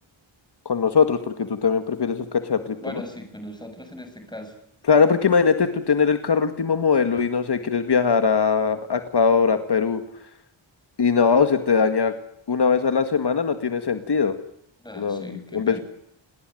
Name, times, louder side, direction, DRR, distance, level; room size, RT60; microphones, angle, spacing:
voice 1, 0.7-3.0 4.9-10.0 11.0-12.1 12.5-14.4 15.0-15.3 15.5-15.8, left 5 dB, 55° left, 9 dB, 2.1 m, -21 dB
voice 2, 2.8-4.5 14.8-15.8, left 1 dB, 10° left, 6 dB, 6.9 m, -38 dB
29.5 x 20.0 x 9.5 m, 0.73 s
wide cardioid pair, 130°, 47 cm